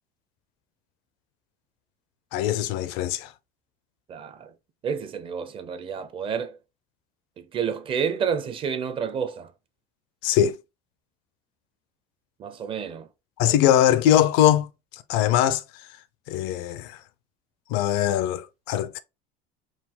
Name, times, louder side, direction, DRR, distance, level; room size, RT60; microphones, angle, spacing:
voice 1, 2.3-3.3 10.2-10.6 13.4-14.7 14.9-15.6 16.3-17.0 17.7-19.0, left 11 dB, 70° left, 0.6 m, -21 dB
voice 2, 4.1-4.5 4.8-6.6 7.4-9.5 12.4-13.1 13.5-13.6, right 7 dB, 30° right, 0.6 m, -30 dB
4.7 x 2.3 x 3.7 m
cardioid pair, 140°, 18 cm